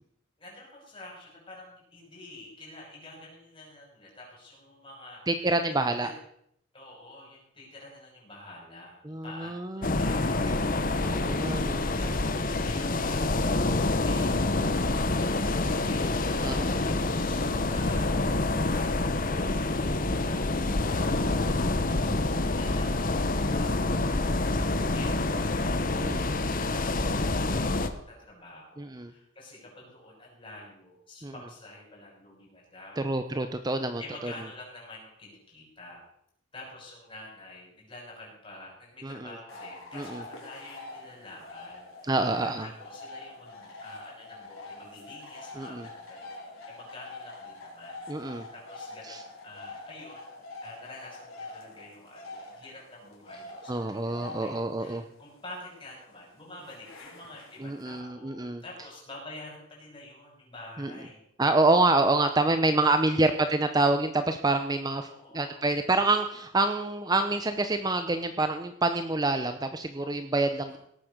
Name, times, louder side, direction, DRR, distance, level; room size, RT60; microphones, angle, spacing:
voice 1, 0.4-5.2 6.0-6.2 6.7-11.1 11.6-16.5 16.8-19.1 19.4-33.1 34.0-36.0 36.5-42.1 42.4-50.3 50.6-61.2 62.8-63.5 65.0-65.7 70.7-70.8, left 2 dB, 25° left, -3 dB, 6.8 m, -48 dB
voice 2, 5.3-6.1 9.1-9.9 11.0-11.9 14.6-14.9 16.4-16.8 26.0-26.3 28.8-29.1 31.2-31.3 33.0-34.3 39.0-39.3 39.9-40.2 42.1-42.7 45.6-45.9 48.1-48.4 49.0-49.2 53.7-55.0 57.6-58.6 60.8-60.9 61.4-65.1 65.3-70.8, right 2 dB, 20° right, 8 dB, 0.7 m, -27 dB
sound 1, 9.8-27.9, left 2 dB, 40° left, 1.1 m, -27 dB
sound 2, 39.5-58.0, left 2 dB, 85° left, 4.2 m, -45 dB
18.0 x 8.4 x 6.6 m, 0.72 s
head